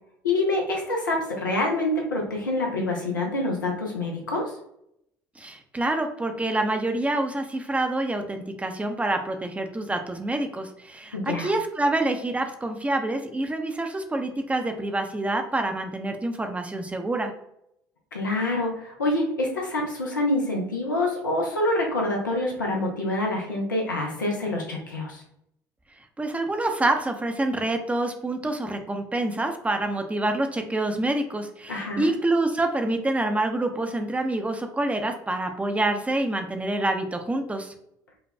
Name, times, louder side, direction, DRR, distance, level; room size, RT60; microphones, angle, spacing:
voice 1, 0.2-4.5 11.1-11.5 18.1-25.2 31.7-32.1, left 2 dB, 90° left, -1 dB, 0.6 m, -26 dB
voice 2, 5.4-17.3 26.2-37.7, right 2 dB, 15° right, 5 dB, 0.6 m, -27 dB
5.3 x 2.2 x 2.2 m, 0.76 s
figure-of-eight pair, 55°, 10 cm